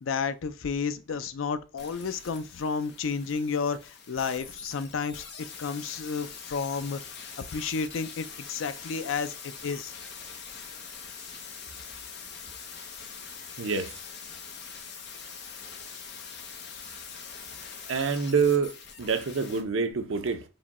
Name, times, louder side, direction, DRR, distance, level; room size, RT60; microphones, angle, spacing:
voice 1, 0.0-7.0 7.5-9.9, left 5 dB, 85° left, 0.4 m, -31 dB
sound 1, 1.8-19.6 19.9-20.0, left 6 dB, 55° left, 0.8 m, -43 dB
voice 2, 13.6-13.9 17.9-18.7 19.0-20.4, right 5 dB, 85° right, 0.7 m, -26 dB
4.9 x 2.2 x 4.1 m
head